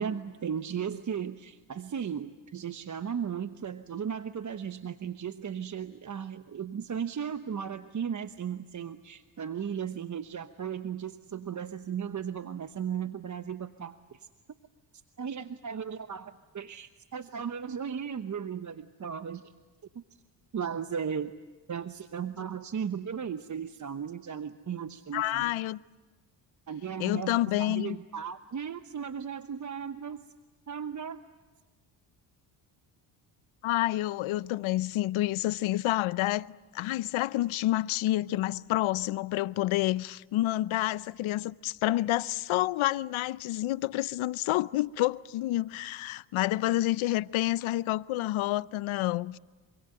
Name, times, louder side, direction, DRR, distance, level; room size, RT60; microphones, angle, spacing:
voice 1, 0.0-14.3 15.2-19.5 19.9-20.0 20.5-21.3 21.7-25.5 26.7-30.2 30.7-31.2, right 7 dB, 40° right, 1.0 m, -36 dB
voice 2, 25.1-25.8 27.0-28.0 33.6-49.4, left 16 dB, 75° left, 0.7 m, -29 dB
26.5 x 25.0 x 7.9 m
cardioid pair, 80°, 48 cm